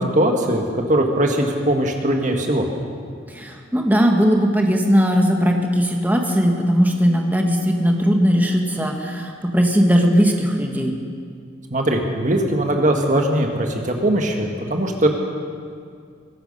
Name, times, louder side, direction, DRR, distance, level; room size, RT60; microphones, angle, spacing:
voice 1, 0.1-2.7 11.7-15.1, right 1 dB, 40° right, 3 dB, 1.7 m, -20 dB
voice 2, 3.3-10.9, equal, 10° right, 2 dB, 1.4 m, -18 dB
22.0 x 12.0 x 5.5 m, 2.2 s
head